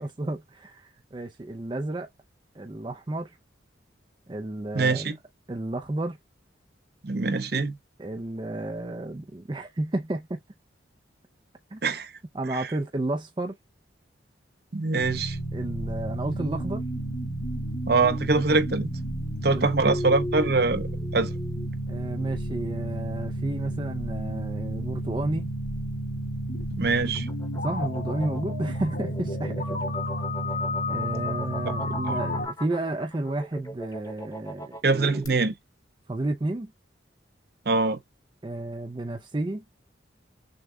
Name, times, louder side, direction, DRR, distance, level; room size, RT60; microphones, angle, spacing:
voice 1, 0.0-2.1 2.6-3.4 4.3-5.1 5.5-6.2 8.0-10.4 11.7-11.8 12.3-13.5 15.5-16.8 19.5-19.7 21.9-25.5 27.6-29.8 30.9-35.3 36.1-36.7 38.4-39.8, right 2 dB, 25° right, 0.5 m, -32 dB
voice 2, 4.7-5.2 7.0-7.8 11.8-12.1 12.5-12.7 14.7-15.4 17.9-18.9 19.4-20.9 21.1-21.3 26.7-27.3 32.1-32.2 34.8-35.5 37.7-38.0, right 3 dB, 55° right, 0.7 m, -24 dB
sound 1, 15.0-32.5, equal, 50° left, 2.3 m, -31 dB
sound 2, 26.8-35.3, equal, 20° left, 1.1 m, -40 dB
6.4 x 2.3 x 3.3 m
head